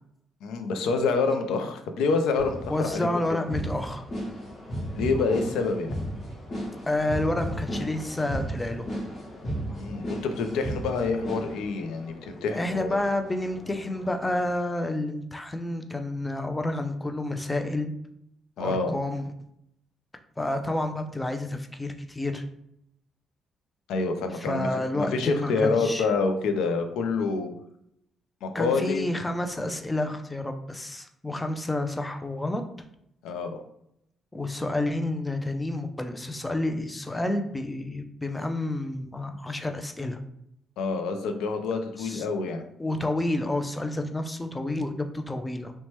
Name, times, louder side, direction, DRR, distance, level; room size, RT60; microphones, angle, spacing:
voice 1, 0.4-3.1 4.9-5.9 9.8-13.0 18.6-18.9 23.9-24.7 24.9-27.5 28.4-29.1 33.2-33.6 40.8-42.6, left 4 dB, 85° left, 6 dB, 0.4 m, -27 dB
sound 1, 2.4-14.5, equal, 40° left, 1.1 m, -35 dB
voice 2, 2.7-4.0 6.9-8.9 12.5-17.9 18.6-19.3 20.4-22.4 24.3-26.1 28.5-32.6 34.3-40.2 42.0-42.3 42.8-45.7, left 1 dB, 15° left, 6 dB, 0.4 m, -29 dB
2.9 x 2.1 x 3.0 m, 0.76 s
cardioid pair, 90°, 0 cm